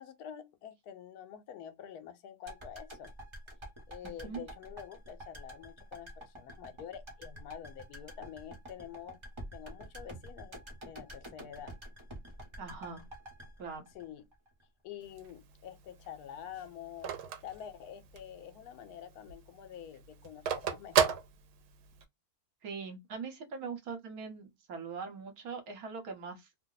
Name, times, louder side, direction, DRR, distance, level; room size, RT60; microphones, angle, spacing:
voice 1, 0.0-3.1 3.9-9.2 9.5-11.8 13.9-14.3 14.8-17.2 17.4-21.2, left 9 dB, 80° left, 1.1 m, -47 dB
sound 1, 2.5-14.6 14.9-15.0, right 1 dB, 25° right, 0.8 m, -48 dB
voice 2, 12.6-13.0 13.6-13.9 22.6-26.5, right 5 dB, 70° right, 1.4 m, -41 dB
Telephone, 15.0-18.4 18.8-18.9 19.2-22.0, right 7 dB, 85° right, 1.2 m, -32 dB
2.9 x 2.1 x 3.8 m
omnidirectional pair, 1.6 m